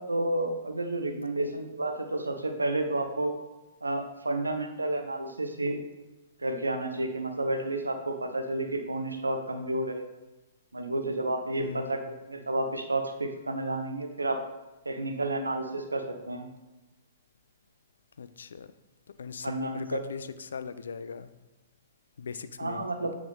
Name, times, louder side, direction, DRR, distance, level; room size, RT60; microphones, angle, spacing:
voice 1, 0.1-3.4 3.8-5.8 6.4-10.1 10.7-14.4 14.9-16.5 19.4-20.0 22.6-23.1, right 2 dB, 85° right, 6 dB, 0.7 m, -31 dB
voice 2, 11.6-12.0 18.2-18.7 19.2-21.3 22.2-22.9, left 6 dB, 70° left, 12 dB, 0.3 m, -38 dB
7.9 x 3.5 x 3.4 m, 1.1 s
figure-of-eight pair, 110°, 0 cm